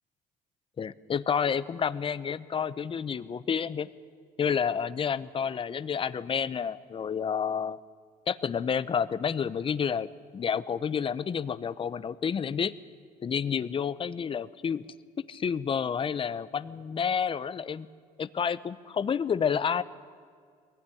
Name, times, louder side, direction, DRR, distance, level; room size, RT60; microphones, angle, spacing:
voice 1, 0.8-3.9 4.4-7.8 8.3-12.7 13.2-14.8 15.2-17.9 18.2-19.8, left 7 dB, 30° left, 16 dB, 0.7 m, -29 dB
22.0 x 16.0 x 9.9 m, 2.1 s
cardioid pair, 110°, 17 cm